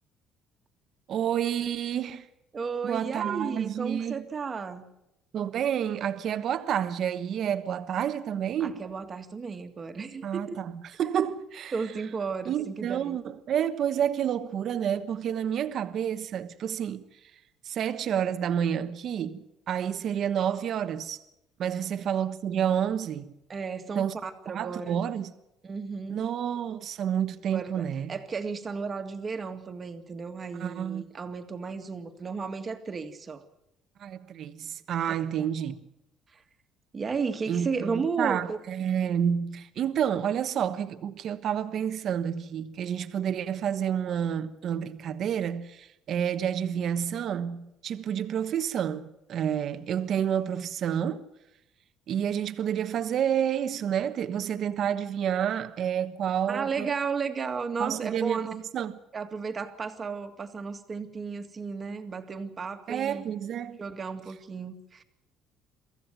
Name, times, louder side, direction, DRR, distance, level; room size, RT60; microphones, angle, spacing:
voice 1, 1.1-2.3 2.8-4.2 5.3-8.8 10.2-11.7 12.5-17.0 17.6-21.2 21.6-23.3 23.9-24.2 24.5-25.3 26.1-28.1 30.6-31.0 34.0-35.7 37.5-51.2 52.1-56.9 57.8-59.0 62.9-63.8, right 9 dB, 50° right, 1.2 m, -29 dB
voice 2, 2.5-4.8 8.6-10.6 11.7-13.2 23.5-25.0 25.6-26.3 27.5-33.4 35.4-35.5 36.3-36.4 36.9-38.6 56.5-58.6 59.1-63.3 63.8-65.0, right 5 dB, 30° right, 2.0 m, -34 dB
23.5 x 15.0 x 9.1 m
cardioid pair, 130°, 0 cm